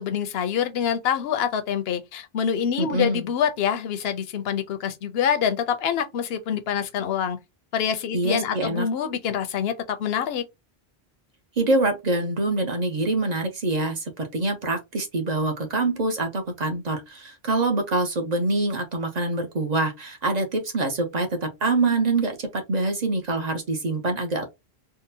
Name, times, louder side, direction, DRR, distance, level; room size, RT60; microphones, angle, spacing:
voice 1, 0.0-7.4 7.7-10.4, left 8 dB, 75° left, 0.8 m, -26 dB
voice 2, 2.8-3.3 8.1-8.9 11.6-24.4, right 2 dB, 45° right, 0.7 m, -25 dB
3.7 x 2.1 x 2.7 m
omnidirectional pair, 1.1 m